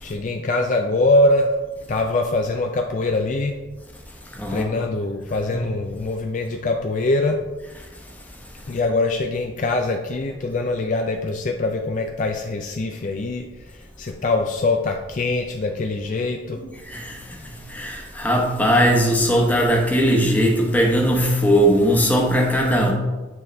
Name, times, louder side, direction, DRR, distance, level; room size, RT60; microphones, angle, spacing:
voice 1, 0.0-1.5 1.9-3.6 4.5-7.4 8.7-16.6, left 2 dB, 40° left, 3 dB, 0.4 m, -23 dB
voice 2, 4.3-4.7 5.5-5.6 16.9-17.2 17.7-22.9, equal, 10° left, -1 dB, 1.0 m, -19 dB
9.1 x 4.0 x 3.3 m, 1.2 s
head